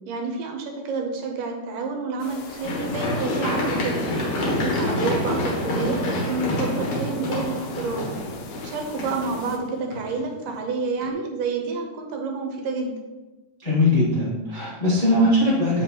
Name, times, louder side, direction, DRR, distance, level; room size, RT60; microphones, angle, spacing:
voice 1, 0.0-4.1 4.5-8.2 8.6-12.9, right 3 dB, 80° right, 2 dB, 2.5 m, -29 dB
sound 1, 2.2-9.6, left 5 dB, 75° left, 1.9 m, -40 dB
Run, 2.6-10.5 11.0-11.1, left 1 dB, 55° left, 1.8 m, -27 dB
voice 2, 13.6-15.8, left 1 dB, 25° left, -8 dB, 0.8 m, -20 dB
7.8 x 5.2 x 3.0 m, 1.1 s
omnidirectional pair, 3.7 m